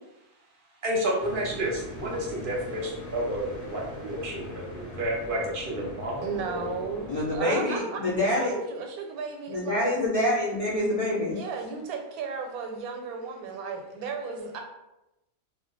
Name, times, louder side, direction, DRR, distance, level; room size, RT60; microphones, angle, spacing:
voice 1, 0.8-6.8, right 1 dB, 50° right, -3 dB, 0.7 m, -31 dB
sound 1, 1.2-7.4, left 1 dB, 15° left, 0.9 m, -42 dB
voice 2, 6.2-10.0 11.3-14.6, right 5 dB, 85° right, 3 dB, 1.1 m, -35 dB
voice 3, 7.1-8.5 9.5-11.4, left 1 dB, 70° left, -7 dB, 0.3 m, -26 dB
2.3 x 2.2 x 3.8 m, 0.92 s
omnidirectional pair, 1.5 m